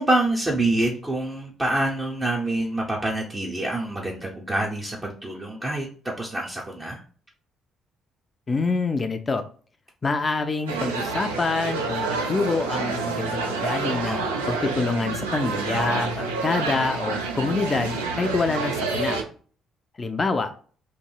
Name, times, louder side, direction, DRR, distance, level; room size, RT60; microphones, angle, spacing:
voice 1, 0.0-7.0 14.1-14.5, right 1 dB, 25° right, -2 dB, 0.6 m, -26 dB
voice 2, 8.5-9.4 10.0-19.2 20.0-20.5, left 3 dB, 35° left, 7 dB, 0.3 m, -26 dB
sound 1, 10.7-19.2, right 4 dB, 85° right, 0.4 m, -28 dB
2.8 x 2.6 x 2.3 m, 0.43 s
hypercardioid pair, 45°, 0 cm